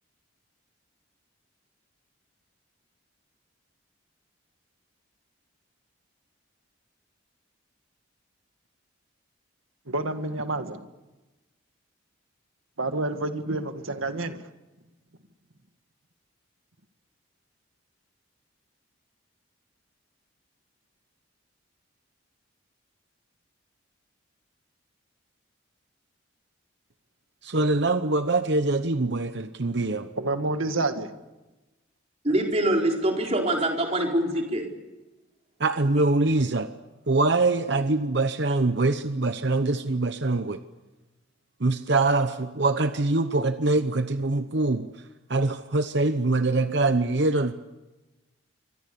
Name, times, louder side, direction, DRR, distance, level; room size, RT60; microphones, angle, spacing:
voice 1, 9.9-10.8 12.8-14.5 30.2-31.1, right 2 dB, 80° right, 1.9 m, -28 dB
voice 2, 27.4-30.1 35.6-36.8 37.1-40.6 41.6-44.9 45.3-47.5, right 2 dB, 55° right, 0.9 m, -24 dB
voice 3, 32.2-34.7, right 1 dB, 30° right, 4.4 m, -24 dB
28.0 x 24.5 x 7.0 m
head